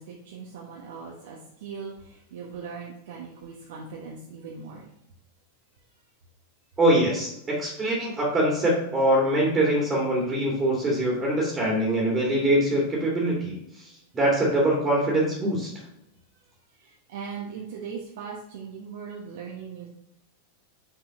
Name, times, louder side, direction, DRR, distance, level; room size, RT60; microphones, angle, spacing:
voice 1, 0.0-4.9 16.8-19.9, right 6 dB, 65° right, -3 dB, 1.1 m, -39 dB
voice 2, 6.8-7.3 7.6-13.5 14.1-15.7, right 1 dB, 20° right, -3 dB, 2.2 m, -23 dB
6.0 x 4.8 x 3.6 m, 0.81 s
hypercardioid pair, 95°, 0 cm